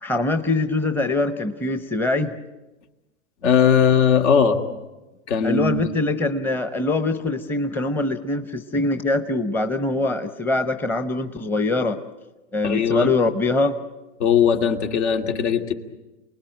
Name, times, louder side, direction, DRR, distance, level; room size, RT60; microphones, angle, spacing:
voice 1, 0.0-2.3 5.4-12.0 12.5-13.8, left 2 dB, 5° left, 9 dB, 0.8 m, -23 dB
voice 2, 3.4-4.6 5.3-5.9 12.6-13.1 14.2-15.7, left 7 dB, 65° left, 5 dB, 2.6 m, -19 dB
28.0 x 20.0 x 9.1 m, 1.1 s
hypercardioid pair, 125°, 36 cm